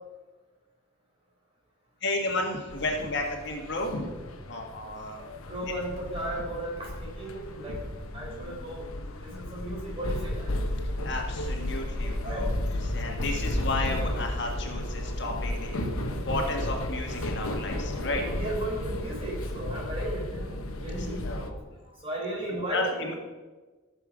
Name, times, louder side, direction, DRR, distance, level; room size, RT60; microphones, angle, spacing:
voice 1, 2.0-4.1 4.5-5.3 11.0-12.5 12.8-18.2 21.0-21.6 22.5-23.1, left 2 dB, 55° left, 1 dB, 1.6 m, -33 dB
sound 1, 2.7-21.5, left 1 dB, 85° left, 1.1 m, -33 dB
voice 2, 5.2-7.8 8.1-8.8 9.2-10.5 12.2-12.4 12.8-12.9 17.3-20.5 20.8-21.3 22.0-23.1, right 1 dB, 25° right, -4 dB, 4.1 m, -35 dB
15.0 x 6.9 x 4.9 m, 1.3 s
head